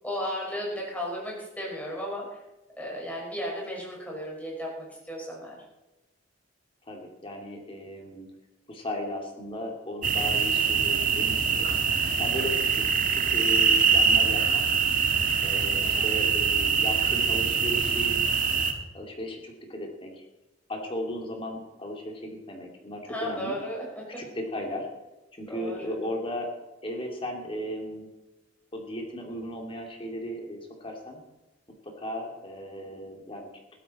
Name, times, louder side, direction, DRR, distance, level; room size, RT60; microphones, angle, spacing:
voice 1, 0.0-2.4 2.8-5.6 15.8-16.1 23.1-24.2 25.5-26.0, equal, 10° left, -3 dB, 5.4 m, -35 dB
voice 2, 6.8-8.3 8.7-11.7 12.2-14.6 15.4-18.2 18.9-20.2 20.7-23.6 24.2-24.9 25.3-26.5 26.8-28.1 28.7-31.2 31.8-33.5, left 1 dB, 30° left, 1 dB, 2.6 m, -36 dB
sound 1, 10.0-18.7, right 6 dB, 45° right, 1.5 m, -24 dB
15.5 x 13.0 x 4.2 m, 1.0 s
head